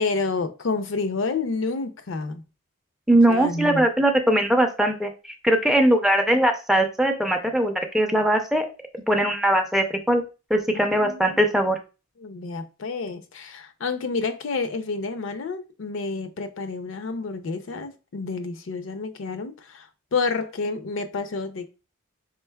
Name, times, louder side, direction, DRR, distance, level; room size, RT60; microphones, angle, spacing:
voice 1, 0.0-2.4 3.3-3.9 10.7-11.4 12.2-21.7, left 4 dB, 60° left, 0.5 m, -29 dB
voice 2, 3.1-5.1 5.4-8.7 9.1-10.2 10.5-11.8, right 1 dB, ahead, 0.4 m, -20 dB
4.4 x 3.8 x 2.2 m
head